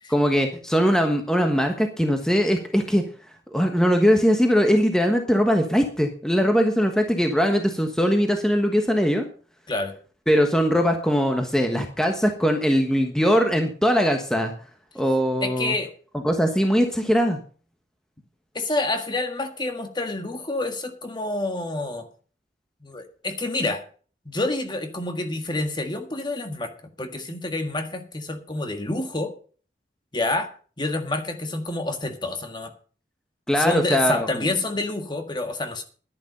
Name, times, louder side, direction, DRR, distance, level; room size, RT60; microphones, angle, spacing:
voice 1, 0.1-3.0 3.5-9.3 10.3-14.5 14.9-15.7 16.2-17.4 33.5-34.5, equal, 5° left, 4 dB, 1.3 m, -21 dB
voice 2, 15.4-15.9 18.5-22.1 22.8-23.8 24.2-26.7 27.0-29.3 30.1-30.5 30.8-32.7 33.5-35.8, left 2 dB, 25° left, 7 dB, 1.6 m, -28 dB
11.5 x 10.5 x 5.5 m, 0.40 s
head